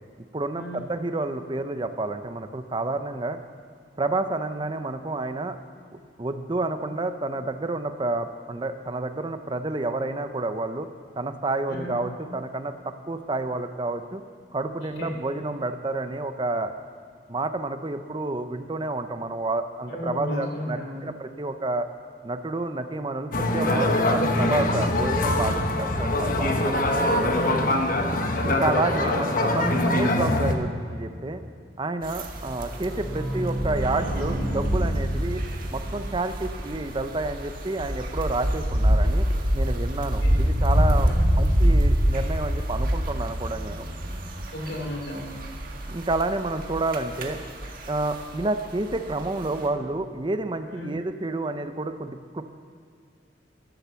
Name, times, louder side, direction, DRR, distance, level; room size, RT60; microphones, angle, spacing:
voice 1, 0.3-3.4 4.0-5.6 6.2-10.9 11.2-14.2 14.5-16.7 17.3-21.9 22.2-26.7 28.4-31.4 31.8-35.4 35.7-39.3 39.5-43.8 45.9-47.4 47.9-52.5, right 2 dB, 25° right, 9 dB, 0.6 m, -29 dB
voice 2, 11.7-12.0 15.0-15.2 19.9-21.1 27.4-27.8 40.2-40.4 41.0-41.4 44.5-45.4 50.7-50.9, left 1 dB, 75° left, 1 dB, 3.0 m, -34 dB
sound 1, 23.3-30.6, left 1 dB, 50° left, 1.1 m, -23 dB
sound 2, 32.0-49.7, equal, 50° right, 1.6 m, -26 dB
sound 3, 32.5-38.0 38.4-38.5 38.6-38.7 39.0-39.1, right 1 dB, 25° left, 3.3 m, -32 dB
12.0 x 11.0 x 7.0 m, 2.3 s
head